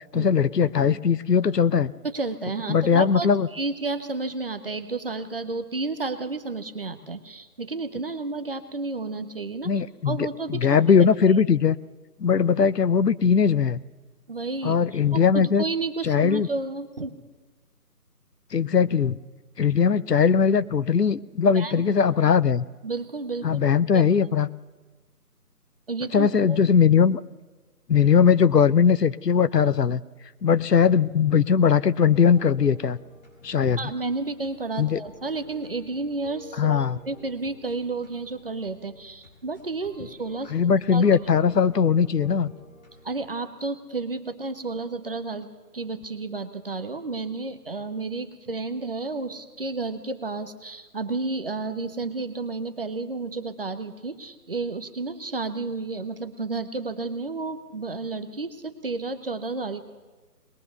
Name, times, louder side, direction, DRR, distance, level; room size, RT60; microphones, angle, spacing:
voice 1, 0.1-1.9 2.7-3.5 9.6-11.8 12.2-13.8 14.6-15.6 16.0-16.5 18.5-19.2 19.6-22.6 23.4-24.5 26.1-27.2 27.9-30.0 30.4-33.0 33.4-33.9 34.8-35.0 36.6-37.0 40.5-42.5, left 6 dB, 80° left, 16 dB, 0.9 m, -20 dB
voice 2, 2.1-9.7 10.0-10.8 11.3-11.4 14.3-14.8 15.1-17.2 21.5-21.9 22.8-23.6 23.9-24.0 25.9-26.6 33.8-40.5 40.9-41.2 43.0-45.5 45.7-59.8, right 3 dB, 35° right, 9 dB, 1.2 m, -31 dB
sound 1, 32.3-43.3, left 1 dB, 25° left, 4.4 m, -51 dB
21.0 x 20.5 x 6.8 m, 1.3 s
figure-of-eight pair, 165°, 48 cm